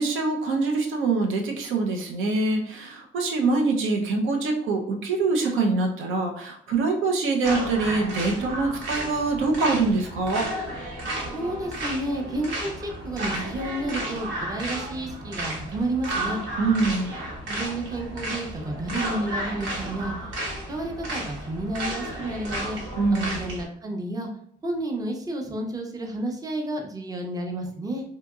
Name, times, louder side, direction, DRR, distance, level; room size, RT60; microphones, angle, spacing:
voice 1, 0.0-10.5 16.6-17.1 23.0-23.4, right 3 dB, 85° right, 2 dB, 0.6 m, -24 dB
sound 1, 7.4-23.6, right 1 dB, 70° right, 1.0 m, -33 dB
voice 2, 11.3-16.4 17.5-20.1 20.7-22.8 23.1-24.3 24.6-28.0, right 1 dB, 20° right, 2 dB, 0.5 m, -31 dB
2.8 x 2.6 x 2.3 m, 0.65 s
cardioid pair, 90°, 20 cm